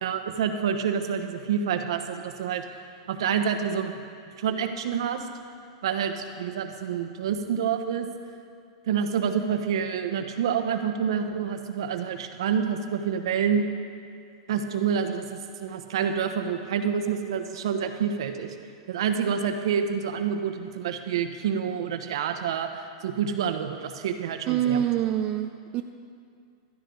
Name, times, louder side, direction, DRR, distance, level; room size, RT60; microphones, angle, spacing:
voice 1, 0.0-2.6 3.1-3.9 4.4-5.2 5.8-8.1 8.9-13.7 14.5-18.5 18.9-24.9, right 7 dB, 75° right, 6 dB, 1.2 m, -28 dB
voice 2, 24.5-25.8, right 11 dB, 35° right, 5 dB, 0.6 m, -25 dB
15.5 x 13.0 x 4.0 m, 2.3 s
hypercardioid pair, 130°, 3 cm